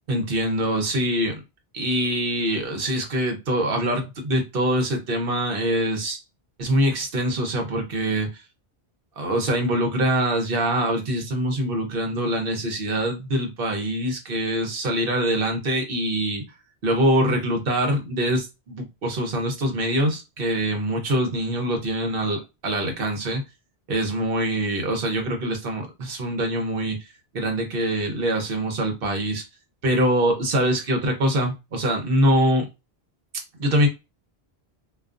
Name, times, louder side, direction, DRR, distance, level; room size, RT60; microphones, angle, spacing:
voice 1, 0.1-1.4 1.7-6.2 6.6-8.3 9.2-16.4 16.8-23.4 23.9-27.0 27.3-29.4 29.8-32.7 33.6-33.9, right 1 dB, 60° right, 1.0 m, -24 dB
2.4 x 2.3 x 2.4 m
omnidirectional pair, 1.1 m